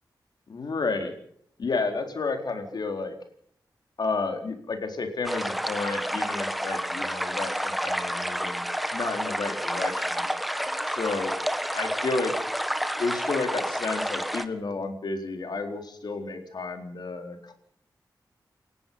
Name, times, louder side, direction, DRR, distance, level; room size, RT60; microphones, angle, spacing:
voice 1, 0.5-1.1 1.6-3.2 4.0-8.6 8.9-10.2 10.9-11.3 11.7-12.3 13.0-17.5, left 3 dB, 65° left, 5 dB, 4.2 m, -31 dB
sound 1, 5.2-14.4, equal, ahead, 1.5 m, -30 dB
29.5 x 17.0 x 5.6 m, 0.65 s
wide cardioid pair, 145°, 8 cm